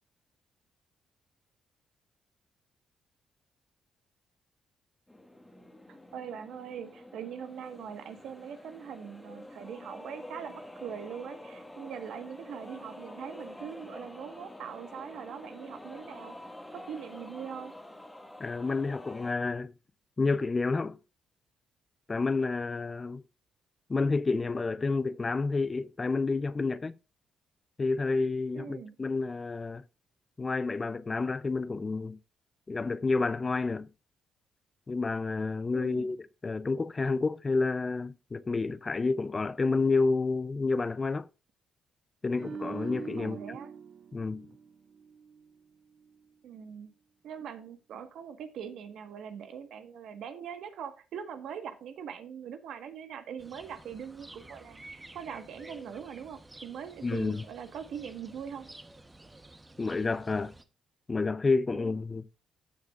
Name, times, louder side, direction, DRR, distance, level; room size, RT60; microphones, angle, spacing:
sound 1, 5.1-19.3, left 1 dB, 10° left, 1.6 m, -47 dB
voice 1, 6.1-16.4 16.7-17.7 28.5-29.0 35.7-36.1 43.2-43.7 46.4-46.9 47.2-58.7 61.7-62.0, right 8 dB, 75° right, 1.4 m, -42 dB
voice 2, 18.4-19.7 20.2-21.0 22.1-23.2 23.9-26.9 27.8-29.8 30.4-32.2 32.7-33.9 34.9-41.3 42.2-43.4 44.1-44.5 57.0-57.4 59.8-60.5 61.1-62.3, left 3 dB, 30° left, 0.4 m, -29 dB
sound 2, 42.3-45.6 45.9-46.2, right 6 dB, 55° right, 0.5 m, -43 dB
sound 3, 53.4-60.6, right 2 dB, 15° right, 1.0 m, -51 dB
14.5 x 6.4 x 2.4 m
cardioid pair, 90°, 0 cm